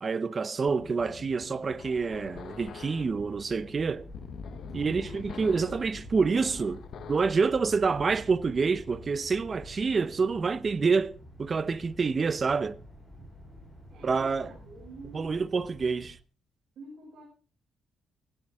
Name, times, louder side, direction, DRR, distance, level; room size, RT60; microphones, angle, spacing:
voice 1, 0.0-4.1 4.7-6.8 7.1-12.8 14.0-14.5 15.1-16.2, right 5 dB, 35° right, 0.8 m, -27 dB
sound 1, 0.7-7.4, left 8 dB, 65° left, 0.9 m, -46 dB
sound 2, 2.3-16.1, equal, 5° right, 7.3 m, -48 dB
voice 2, 4.7-5.3 13.9-15.4 16.8-17.3, right 2 dB, 70° right, 7.5 m, -48 dB
17.5 x 16.5 x 3.6 m
cardioid pair, 140°, 0 cm